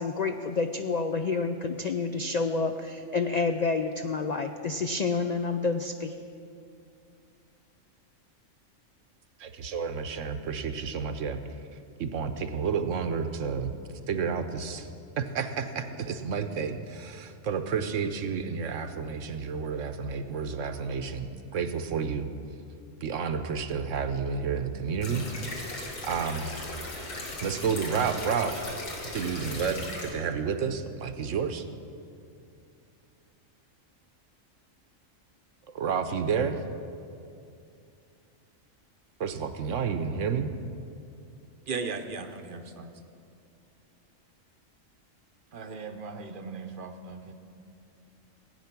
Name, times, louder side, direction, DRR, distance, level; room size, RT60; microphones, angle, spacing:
voice 1, 0.0-6.1, left 4 dB, 70° left, 7 dB, 0.4 m, -29 dB
voice 2, 9.4-11.4 12.0-13.7 14.1-14.9 15.2-22.3 23.0-25.2 26.0-26.5 27.4-28.7 29.1-31.6 35.7-36.6 39.2-40.5, right 6 dB, 70° right, 9 dB, 1.1 m, -30 dB
sound 1, 25.0-30.1, left 2 dB, 85° left, 2.2 m, -38 dB
voice 3, 41.7-42.9 45.5-47.3, right 4 dB, 45° right, 7 dB, 0.8 m, -37 dB
16.5 x 8.9 x 5.9 m, 2.5 s
omnidirectional pair, 1.4 m